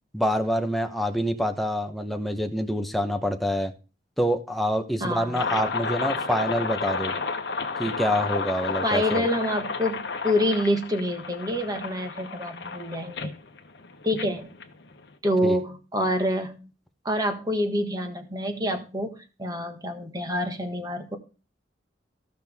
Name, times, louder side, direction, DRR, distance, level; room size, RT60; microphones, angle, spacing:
voice 1, 0.1-3.7 4.2-7.1 7.8-9.3 15.4-15.6, equal, ahead, 5 dB, 0.9 m, -26 dB
voice 2, 5.0-5.5 8.8-13.3 14.0-14.5 15.2-16.7 17.0-21.2, equal, 20° right, 5 dB, 1.5 m, -27 dB
sound 1, 5.3-15.1, left 4 dB, 65° left, 1.1 m, -31 dB
15.0 x 6.1 x 3.5 m, 0.33 s
head